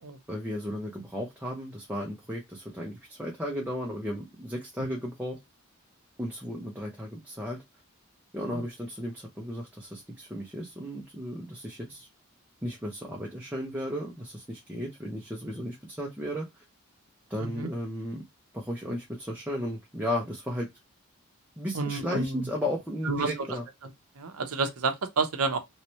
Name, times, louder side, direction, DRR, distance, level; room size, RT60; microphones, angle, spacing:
voice 1, 0.3-5.4 6.2-7.6 8.3-12.1 12.6-16.5 17.3-18.2 18.5-20.7 21.6-23.6, equal, 10° right, 0.7 m, -34 dB
voice 2, 21.7-22.5 23.0-23.3 24.2-25.6, right 4 dB, 90° right, 0.8 m, -30 dB
3.1 x 3.0 x 2.9 m
head